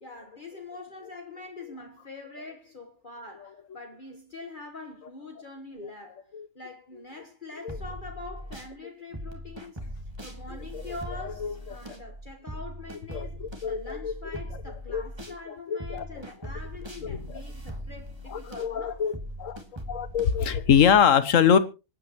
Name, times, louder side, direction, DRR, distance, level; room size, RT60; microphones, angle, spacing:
voice 1, 0.0-6.3 6.5-9.8 10.2-19.0, left 3 dB, 35° left, 1.5 m, -44 dB
sound 1, 7.7-8.7 9.1-15.4 15.8-21.0, equal, 20° right, 2.0 m, -40 dB
voice 2, 10.5-10.8 11.4-11.5 13.1-14.1 14.9-15.0 15.7-16.0 17.0-17.3 18.3-19.1 19.4-19.6 19.9-21.6, left 8 dB, 70° left, 1.3 m, -23 dB
25.5 x 9.2 x 3.0 m
omnidirectional pair, 1.5 m